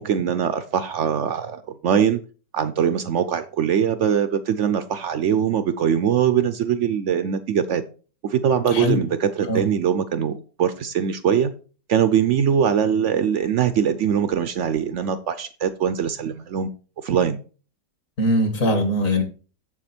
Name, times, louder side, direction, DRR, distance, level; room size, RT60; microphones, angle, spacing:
voice 1, 0.0-2.2 2.5-7.8 8.2-11.5 11.9-16.7 17.0-17.4, right 8 dB, 70° right, 11 dB, 0.7 m, -22 dB
voice 2, 8.7-9.0 9.4-9.6 18.2-19.2, left 1 dB, 50° left, 6 dB, 1.9 m, -21 dB
7.4 x 7.4 x 4.3 m, 0.37 s
omnidirectional pair, 1.9 m